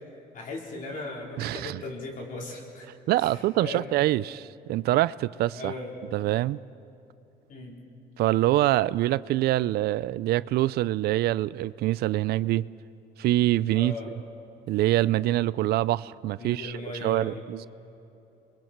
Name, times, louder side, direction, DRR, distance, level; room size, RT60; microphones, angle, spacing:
voice 1, 0.3-2.9 3.2-3.3 3.6-3.9 5.6-5.9 7.5-7.8 13.7-14.1 16.4-17.4, left 2 dB, 55° left, 4.4 m, -37 dB
voice 2, 1.4-1.8 3.1-5.7 6.1-6.6 8.2-12.7 13.2-14.2 14.7-17.7, right 15 dB, 70° right, 0.4 m, -25 dB
28.5 x 22.5 x 4.5 m
cardioid pair, 110°, 17 cm